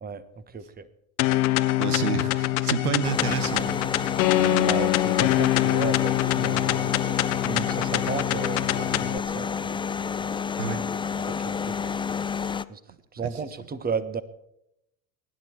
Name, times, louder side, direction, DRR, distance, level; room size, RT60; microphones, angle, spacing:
voice 1, 0.5-0.9 4.6-6.9 7.4-9.8 11.2-12.0 12.7-12.8 13.1-14.2, right 5 dB, 20° right, 14 dB, 1.3 m, -34 dB
sound 1, 1.2-9.2, left 16 dB, 70° left, 1.2 m, -24 dB
voice 2, 1.8-3.8 4.4-4.8 10.6-10.8 13.2-13.3, right 7 dB, 90° right, 11 dB, 1.5 m, -29 dB
sound 2, 3.0-12.6, left 6 dB, 10° left, 0.5 m, -30 dB
24.0 x 11.0 x 4.6 m, 0.80 s
hypercardioid pair, 80°, 44 cm